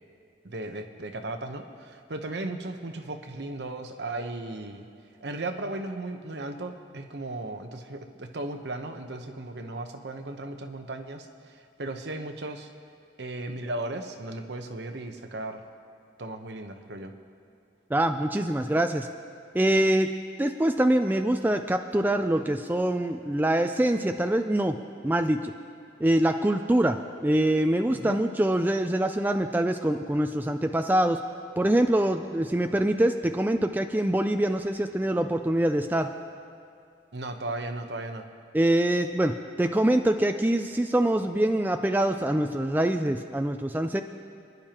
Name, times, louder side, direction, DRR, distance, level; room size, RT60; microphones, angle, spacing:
voice 1, 0.4-4.9 5.2-12.7 13.2-15.6 16.2-17.1 27.9-28.2 37.1-38.3, right 2 dB, 70° right, 5 dB, 0.9 m, -36 dB
voice 2, 17.9-19.1 19.5-20.1 20.4-24.8 25.0-25.5 26.0-31.2 31.6-36.1 38.5-44.0, right 1 dB, 10° right, 6 dB, 0.3 m, -24 dB
29.5 x 10.5 x 2.9 m, 2.4 s
head